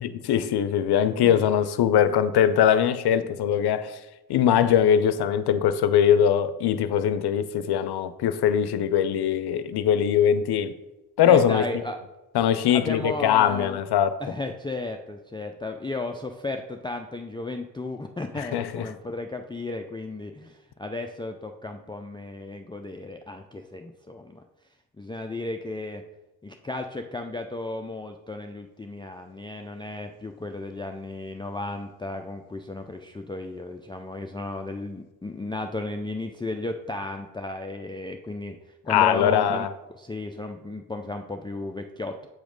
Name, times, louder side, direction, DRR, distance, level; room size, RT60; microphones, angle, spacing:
voice 1, 0.0-4.0 4.3-10.7 11.2-11.6 12.3-14.2 18.4-18.8 38.9-39.7, left 9 dB, 80° left, 0.6 m, -21 dB
voice 2, 11.3-12.0 12.7-13.8 14.2-24.4 25.0-26.0 26.4-38.6 38.8-39.7 40.0-42.3, left 2 dB, 10° left, 0.4 m, -34 dB
7.9 x 3.1 x 5.1 m
cardioid pair, 70°, 39 cm